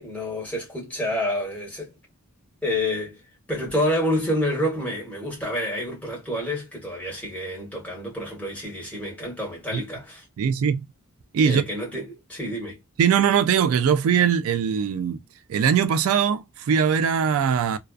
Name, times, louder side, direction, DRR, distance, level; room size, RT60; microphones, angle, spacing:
voice 1, 0.0-1.9 2.6-3.2 3.5-10.2 11.4-12.8, left 1 dB, 5° left, 1.2 m, -28 dB
voice 2, 10.4-10.8 11.3-11.6 13.0-15.2 15.5-17.8, right 7 dB, 75° right, 0.3 m, -21 dB
2.3 x 2.3 x 2.3 m
head